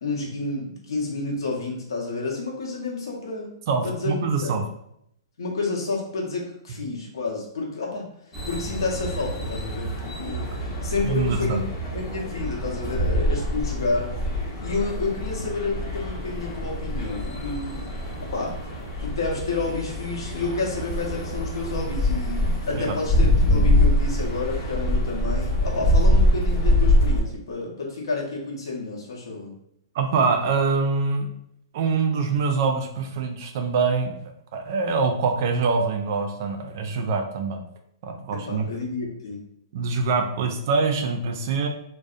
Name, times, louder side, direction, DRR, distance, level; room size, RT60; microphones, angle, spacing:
voice 1, 0.0-3.5 3.8-4.6 5.4-8.0 8.5-10.5 10.8-11.6 11.9-14.1 14.6-17.9 18.3-18.5 19.0-29.5 38.3-39.4, left 3 dB, 85° left, -2 dB, 0.8 m, -30 dB
voice 2, 3.7-4.6 11.0-11.6 22.7-22.9 30.0-31.3 31.7-34.1 34.5-37.6 38.0-38.7 39.7-41.7, right 4 dB, 45° right, 4 dB, 0.3 m, -24 dB
sound 1, 8.3-27.2, left 1 dB, 20° left, 0.6 m, -24 dB
2.6 x 2.0 x 2.4 m, 0.73 s
hypercardioid pair, 165°, 2 cm